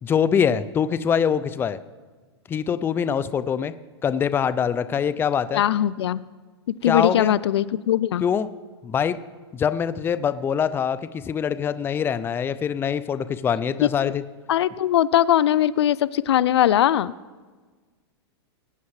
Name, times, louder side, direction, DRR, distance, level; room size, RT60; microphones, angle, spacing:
voice 1, 0.0-1.8 2.5-3.7 4.0-5.6 6.8-7.3 8.2-8.5 8.8-9.2 9.5-14.2, left 7 dB, 15° left, 14 dB, 0.4 m, -24 dB
voice 2, 5.5-6.2 6.8-8.2 14.0-14.1 14.5-17.1, left 11 dB, 80° left, 20 dB, 0.4 m, -20 dB
20.5 x 9.4 x 3.2 m, 1.4 s
hypercardioid pair, 120°, 14 cm